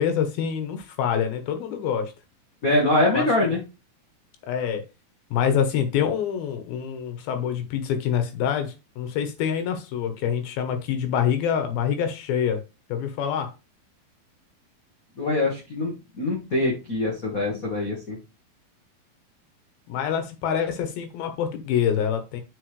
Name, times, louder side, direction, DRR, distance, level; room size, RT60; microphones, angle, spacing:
voice 1, 0.0-2.1 3.1-3.6 4.5-4.8 5.3-12.6 12.9-13.5 19.9-22.4, left 8 dB, 80° left, 8 dB, 3.0 m, -26 dB
voice 2, 2.6-3.6 15.2-18.2, left 2 dB, 55° left, -2 dB, 0.9 m, -24 dB
8.0 x 5.5 x 3.2 m, 0.28 s
omnidirectional pair, 4.3 m